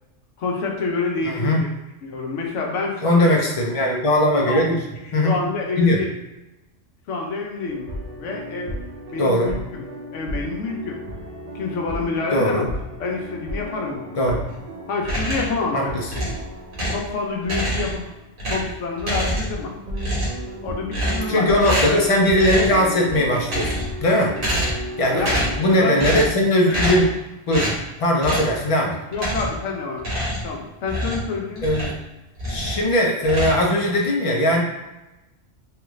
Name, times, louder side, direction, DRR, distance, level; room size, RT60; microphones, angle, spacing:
voice 1, 0.4-1.7 2.0-3.4 4.4-4.6 5.2-6.1 7.1-7.9 8.2-8.7 9.1-9.8 10.1-11.0 11.5-12.7 13.0-14.1 14.9-16.3 16.9-18.1 18.5-19.7 20.6-21.5 25.1-26.0 26.7-26.8 29.1-30.0 30.4-31.7, left 4 dB, 70° left, 0 dB, 1.0 m, -27 dB
voice 2, 1.2-1.7 3.0-4.8 5.1-5.4 5.8-6.0 9.2-9.5 12.3-12.7 14.2-14.4 15.7-16.1 21.3-24.3 25.0-25.3 25.6-27.1 27.5-29.0 31.6-32.0 32.5-34.6, left 1 dB, 45° left, 0 dB, 0.4 m, -19 dB
sound 1, 7.6-17.8 18.1-18.2 19.1-26.3, equal, 65° right, 0.3 m, -34 dB
sound 2, 15.0-15.6 16.1-17.1 17.4-18.1 18.4-19.7 19.9-20.5 20.9-21.4 21.6-22.0 22.4-22.8 23.3-24.0 24.4-24.9 25.2-25.6 26.0-26.4 26.7-27.1 27.5-27.8 28.2-28.5 29.1-29.6 30.0-32.0 32.4-32.9 33.2-34.1, equal, 45° right, 1.2 m, -26 dB
3.3 x 2.3 x 3.1 m, 1.0 s
omnidirectional pair, 1.3 m